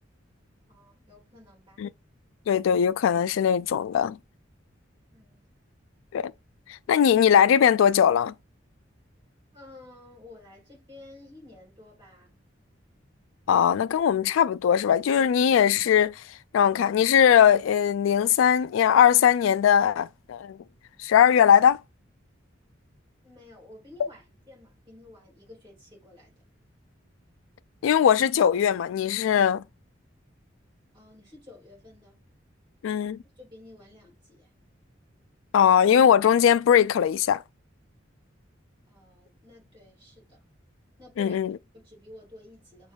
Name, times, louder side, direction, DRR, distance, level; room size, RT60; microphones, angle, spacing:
voice 1, 0.7-1.9 5.1-5.5 9.5-12.5 23.2-26.3 30.9-32.2 33.3-34.5 38.9-40.4 41.0-41.4 41.7-42.9, left 2 dB, 25° right, 3.2 m, -51 dB
voice 2, 2.5-4.2 6.1-6.3 6.7-8.3 13.5-16.1 16.5-20.6 21.0-21.8 27.8-29.6 32.8-33.2 35.5-37.4 41.2-41.6, left 8 dB, 90° left, 0.3 m, -20 dB
6.2 x 2.4 x 3.4 m
head